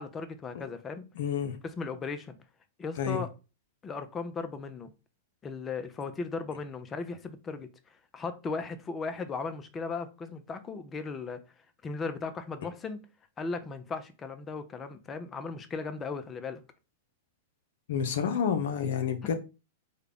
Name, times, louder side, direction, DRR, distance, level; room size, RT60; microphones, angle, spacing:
voice 1, 0.0-1.1 1.6-2.3 2.8-3.3 3.8-4.9 5.4-7.7 8.1-11.4 11.8-13.0 13.4-16.6, left 4 dB, 20° left, 0.5 m, -37 dB
voice 2, 1.2-1.6 3.0-3.2 17.9-19.3, left 7 dB, 70° left, 0.6 m, -29 dB
3.7 x 2.3 x 3.4 m
hypercardioid pair, 110°, 0 cm